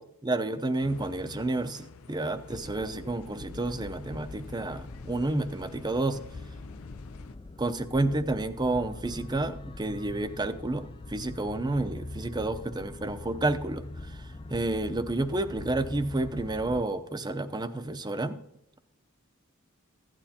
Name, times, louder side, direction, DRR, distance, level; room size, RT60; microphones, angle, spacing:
voice 1, 0.0-6.2 7.6-18.4, right 2 dB, 20° right, 10 dB, 0.6 m, -30 dB
sound 1, 0.8-7.4, left 5 dB, 80° left, 0.5 m, -48 dB
sound 2, 2.5-16.8, left 2 dB, 25° left, 0.4 m, -43 dB
15.5 x 11.5 x 2.9 m, 0.81 s
head